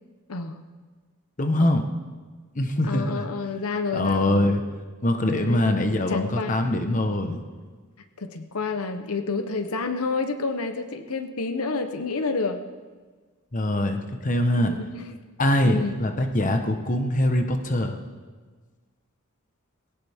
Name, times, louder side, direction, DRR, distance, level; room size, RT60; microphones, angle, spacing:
voice 1, 0.3-0.6 1.6-1.8 2.9-4.5 5.4-5.7 6.1-6.6 8.2-12.6 14.6-15.1 15.6-16.0, left 3 dB, 90° left, 8 dB, 1.0 m, -29 dB
voice 2, 1.4-1.9 2.5-3.3 3.9-4.7 5.0-7.4 13.5-14.7 15.4-18.0, left 1 dB, 35° left, 5 dB, 1.1 m, -23 dB
20.5 x 17.0 x 3.6 m, 1.4 s
head